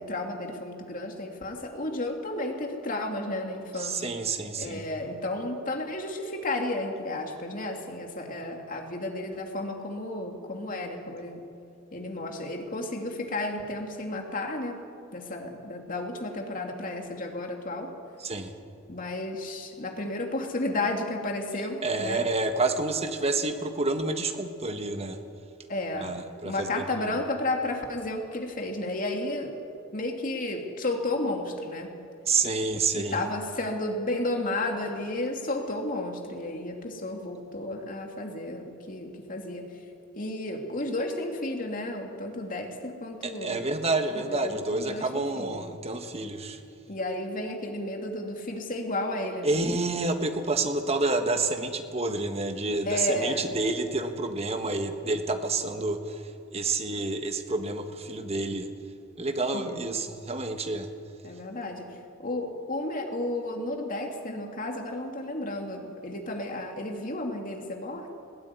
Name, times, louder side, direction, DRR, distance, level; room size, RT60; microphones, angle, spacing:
voice 1, 0.0-4.1 4.6-11.4 11.9-14.8 15.1-17.9 18.9-22.2 25.7-26.2 26.4-29.5 29.9-31.9 32.9-39.6 40.1-43.7 44.3-45.6 46.9-49.6 52.8-53.5 59.5-59.8 61.2-61.9 62.2-68.1, left 2 dB, 45° left, 2 dB, 2.7 m, -32 dB
voice 2, 3.7-4.9 18.2-18.5 21.8-25.2 25.9-27.2 32.3-33.2 43.2-46.6 49.4-56.2 56.5-58.7 59.2-60.9, right 3 dB, 30° right, 7 dB, 1.5 m, -29 dB
20.0 x 15.5 x 9.9 m, 2.5 s
head